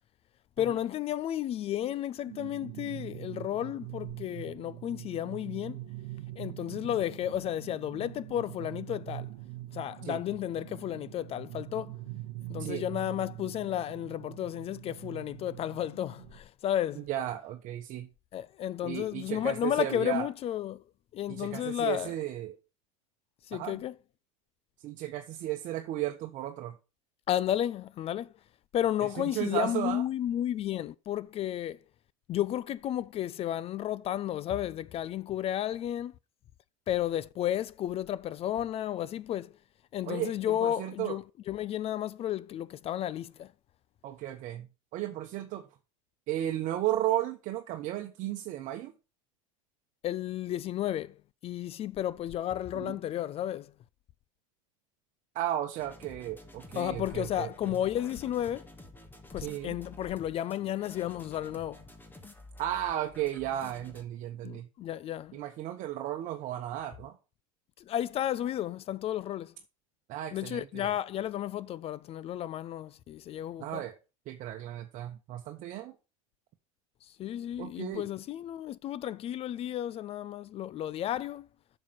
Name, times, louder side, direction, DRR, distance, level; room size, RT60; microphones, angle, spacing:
voice 1, 0.6-5.8 6.4-9.3 9.7-11.9 12.5-17.1 18.3-20.8 21.1-22.1 23.5-23.9 27.3-28.3 28.7-31.8 32.3-36.1 36.9-39.5 39.9-43.5 50.0-51.1 51.4-53.7 56.8-58.6 59.3-61.8 64.4-65.4 67.9-69.5 70.3-73.8 77.2-81.5, left 11 dB, 35° left, 0.5 m, -32 dB
sound 1, 2.3-16.4, right 17 dB, 65° right, 0.8 m, -43 dB
voice 2, 16.9-18.1 18.8-20.3 21.3-22.5 23.5-23.8 24.8-26.7 29.0-30.0 40.0-41.2 44.0-45.7 46.3-48.9 52.7-53.0 55.3-57.8 59.4-59.8 62.6-64.7 65.3-67.2 70.1-70.9 73.6-74.0 74.3-75.9 77.6-78.1, right 13 dB, 45° right, 1.2 m, -34 dB
sound 2, 55.8-64.0, left 2 dB, 10° left, 1.7 m, -51 dB
7.3 x 6.7 x 5.9 m
supercardioid pair, 105°, 17 cm